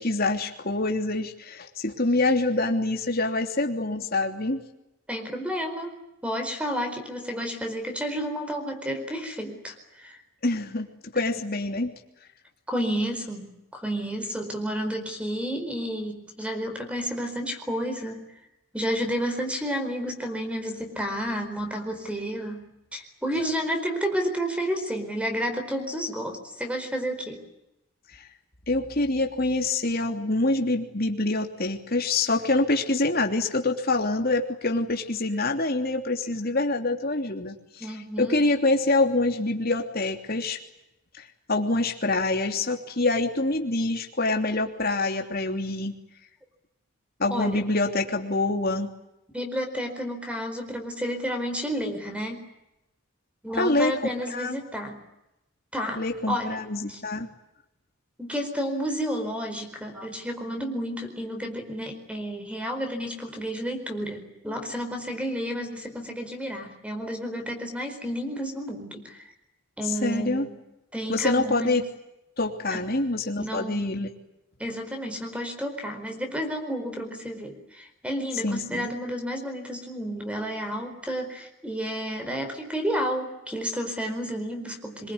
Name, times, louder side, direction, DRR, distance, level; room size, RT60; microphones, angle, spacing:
voice 1, 0.0-4.6 10.4-11.9 28.7-37.9 38.2-40.6 41.2-45.9 47.2-48.9 53.6-53.9 54.3-54.6 56.0-57.3 70.0-70.5 71.1-71.8 72.4-74.1 78.4-78.9, left 2 dB, 40° left, 4 dB, 3.1 m, -26 dB
voice 2, 5.1-6.0 6.2-10.2 12.7-18.2 18.7-27.4 37.8-38.4 47.3-47.6 49.3-52.5 53.4-55.0 55.7-56.6 56.9-57.0 58.2-69.3 69.8-70.5 70.9-71.8 72.7-72.8 73.4-73.9 74.6-85.1, equal, 5° right, 6 dB, 4.6 m, -31 dB
25.5 x 23.0 x 9.7 m, 0.91 s
head